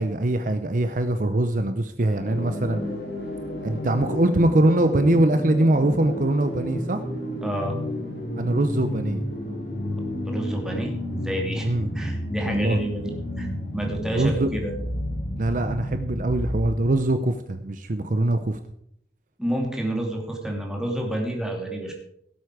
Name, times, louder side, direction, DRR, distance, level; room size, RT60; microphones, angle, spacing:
voice 1, 0.0-2.8 3.6-7.0 8.4-9.2 11.6-11.9 12.4-12.8 14.1-14.5 15.4-18.6, right 1 dB, 50° right, 9 dB, 0.7 m, -22 dB
sound 1, 2.0-17.0, equal, 65° left, 3.9 m, -31 dB
voice 2, 7.4-7.8 10.3-13.1 13.4-13.5 13.7-14.7 19.4-21.9, right 1 dB, 5° right, 0 dB, 2.8 m, -29 dB
16.5 x 8.3 x 4.9 m, 0.70 s
head